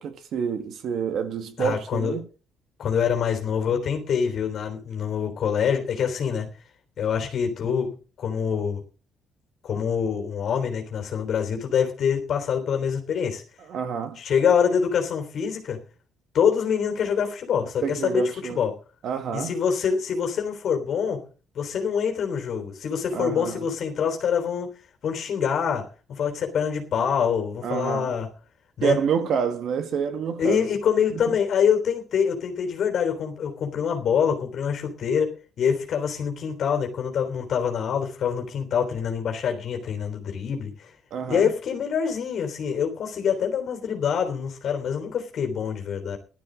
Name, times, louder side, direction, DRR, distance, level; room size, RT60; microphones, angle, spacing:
voice 1, 0.0-2.2 13.7-14.2 17.8-18.6 19.0-19.5 23.1-23.7 27.6-28.1 28.8-30.7 31.1-31.4 41.1-41.5, right 7 dB, 65° right, 1.8 m, -28 dB
voice 2, 1.6-2.1 2.8-6.5 7.0-8.8 9.6-13.4 14.2-15.8 16.3-18.7 19.3-21.2 21.5-24.7 25.0-28.3 28.8-29.0 30.4-40.9 41.3-46.2, left 7 dB, 55° left, 3.4 m, -25 dB
17.0 x 12.5 x 3.9 m
cardioid pair, 135°, 0 cm